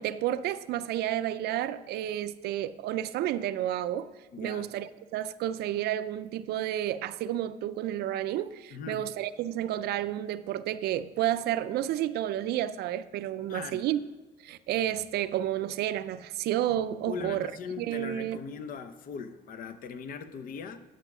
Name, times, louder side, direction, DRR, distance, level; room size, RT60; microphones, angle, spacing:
voice 1, 0.0-4.1 4.4-14.0 14.4-17.5 17.8-18.4, right 12 dB, 70° right, 0.4 m, -31 dB
voice 2, 4.3-4.7 8.7-9.0 13.5-13.8 17.1-20.8, left 6 dB, 55° left, 0.7 m, -40 dB
10.0 x 6.2 x 5.9 m
cardioid pair, 110°, 17 cm